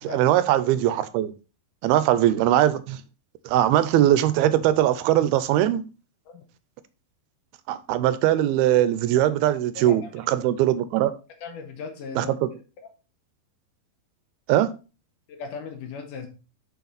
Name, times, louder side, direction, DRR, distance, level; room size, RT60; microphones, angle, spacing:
voice 1, 0.0-1.3 1.8-3.0 3.5-5.8 7.7-10.0 10.3-11.1 12.2-12.5 14.5-14.7, right 12 dB, 85° right, 2.6 m, -21 dB
voice 2, 11.4-12.3 15.3-16.3, left 5 dB, 65° left, 2.5 m, -37 dB
6.9 x 6.5 x 4.1 m
omnidirectional pair, 4.4 m